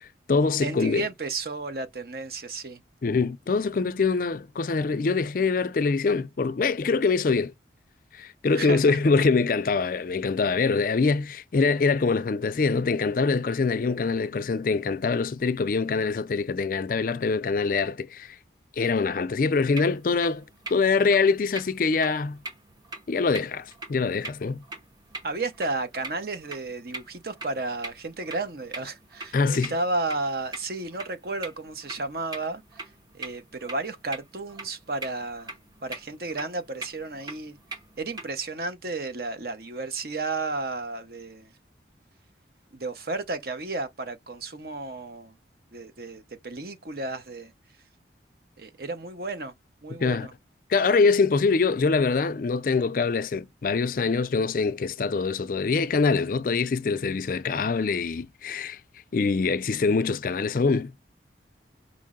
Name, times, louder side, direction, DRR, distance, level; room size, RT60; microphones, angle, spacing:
voice 1, 0.0-1.1 3.0-7.5 8.1-18.4 18.8-20.4 20.7-22.4 23.1-24.6 29.3-29.7 50.0-50.3 50.7-58.8 59.1-60.9, left 4 dB, 50° left, 0.4 m, -24 dB
voice 2, 0.6-2.8 8.5-9.0 25.2-32.8 33.1-35.5 35.8-37.6 38.0-41.5 42.7-45.3 45.7-47.5 48.6-49.5 49.8-50.3, right 3 dB, 55° right, 0.8 m, -33 dB
sound 1, 19.5-38.3, right 2 dB, 20° right, 0.7 m, -43 dB
5.3 x 2.0 x 3.6 m
head